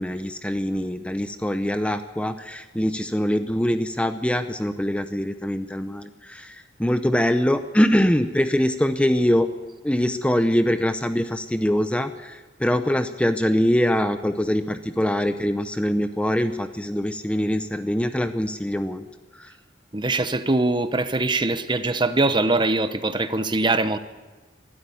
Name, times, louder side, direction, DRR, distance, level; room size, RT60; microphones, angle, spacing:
voice 1, 0.0-9.5 9.8-19.1 19.3-19.5, equal, 5° left, 9 dB, 0.6 m, -23 dB
voice 2, 19.9-24.0, right 2 dB, 25° right, 11 dB, 0.8 m, -22 dB
22.0 x 12.5 x 9.6 m, 1.3 s
head